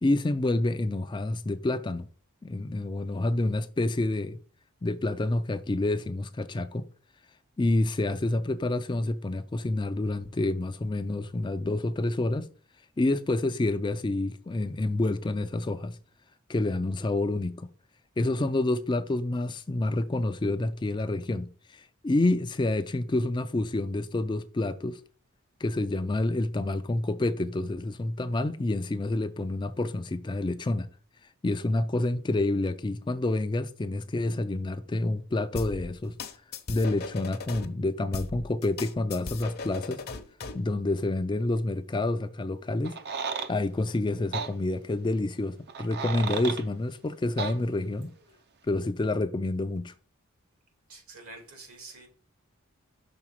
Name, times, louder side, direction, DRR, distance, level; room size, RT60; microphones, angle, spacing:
voice 1, 0.0-2.1 2.4-4.4 4.8-6.8 7.6-12.5 13.0-16.0 16.5-17.7 18.2-25.0 25.6-30.9 31.4-36.2 36.7-40.0 40.5-42.9 43.5-48.1 48.7-49.9, left 2 dB, 20° left, 0.4 m, -28 dB
sound 1, 35.6-37.7 38.1-40.6, left 4 dB, 45° left, 0.8 m, -38 dB
sound 2, 42.8-43.5 44.3-44.5 45.7-46.6 47.4-47.6, right 5 dB, 50° right, 0.6 m, -33 dB
voice 2, 50.9-52.1, right 3 dB, 80° right, 2.5 m, -47 dB
6.0 x 3.9 x 5.9 m
head